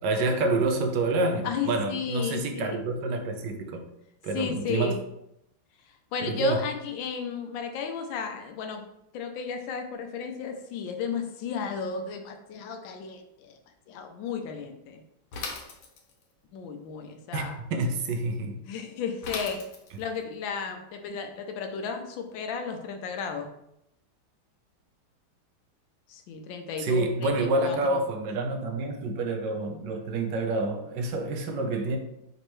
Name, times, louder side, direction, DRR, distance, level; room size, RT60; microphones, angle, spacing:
voice 1, 0.0-3.8 4.2-5.0 6.2-6.6 17.3-18.6 26.8-32.0, right 2 dB, 70° right, 1.2 m, -28 dB
voice 2, 1.4-2.8 4.3-5.0 6.1-8.8 9.1-13.6 13.9-15.0 16.5-17.6 18.7-19.7 20.0-23.5 26.1-28.0, left 6 dB, 75° left, 1.3 m, -34 dB
Bicycle / Mechanisms, 15.3-16.3 19.2-20.2, left 4 dB, 90° left, 1.7 m, -38 dB
5.3 x 2.9 x 3.1 m
omnidirectional pair, 2.3 m